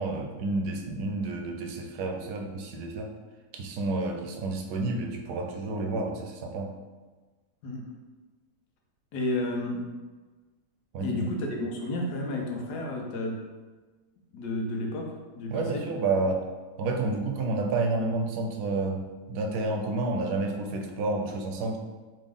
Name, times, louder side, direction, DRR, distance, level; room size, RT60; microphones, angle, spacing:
voice 1, 0.0-3.1 3.5-6.8 10.9-11.2 15.5-16.4 16.8-21.8, right 3 dB, 85° right, 3 dB, 1.2 m, -30 dB
voice 2, 9.1-9.8 11.0-13.5 14.3-15.9, left 1 dB, 85° left, 0 dB, 1.4 m, -31 dB
4.3 x 3.0 x 3.6 m, 1.3 s
omnidirectional pair, 1.7 m